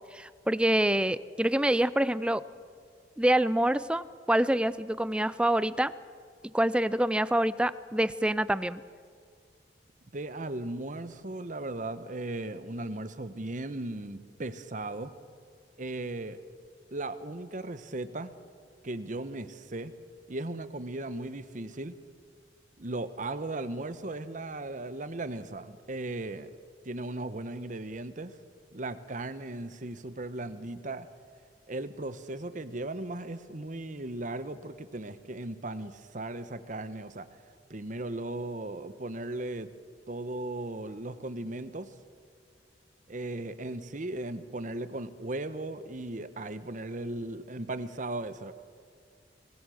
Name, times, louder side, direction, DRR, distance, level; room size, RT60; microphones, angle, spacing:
voice 1, 0.1-2.4 3.2-5.9 6.5-8.8, right 1 dB, 5° right, 16 dB, 0.4 m, -26 dB
voice 2, 10.1-15.1 15.8-16.4 16.9-18.3 18.8-19.9 20.3-21.9 22.8-26.5 26.8-28.3 28.7-31.1 31.7-37.3 37.7-39.7 40.1-41.9 43.1-48.5, right 2 dB, 45° right, 12 dB, 1.0 m, -37 dB
24.0 x 17.5 x 6.4 m, 2.1 s
head